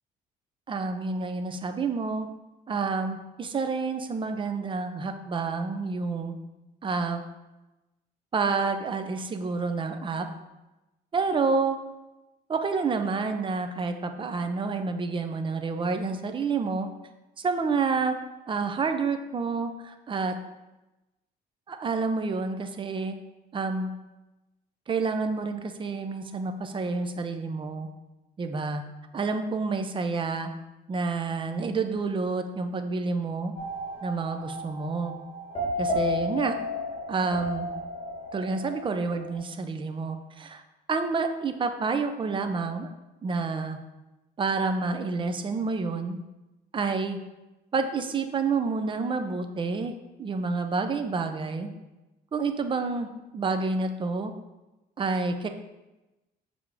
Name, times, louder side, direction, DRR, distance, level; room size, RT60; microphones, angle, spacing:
voice 1, 0.7-2.3 2.7-6.3 6.8-7.2 8.3-10.3 11.1-11.8 12.5-16.9 17.4-18.2 18.5-20.4 21.7-23.2 23.5-23.9 24.9-27.9 28.4-28.8 29.1-30.5 30.9-33.5 34.0-35.2 35.8-36.6 37.1-37.7 38.3-40.6 40.9-42.9 43.2-43.8 44.4-46.2 46.7-47.2 47.7-49.9 50.2-51.7 52.3-53.1 53.3-54.3 55.0-55.5, right 4 dB, 30° right, 7 dB, 0.7 m, -29 dB
sound 1, 33.6-39.4, left 2 dB, 35° left, 2.3 m, -33 dB
7.2 x 3.6 x 4.9 m, 1.0 s
cardioid pair, 110°, 17 cm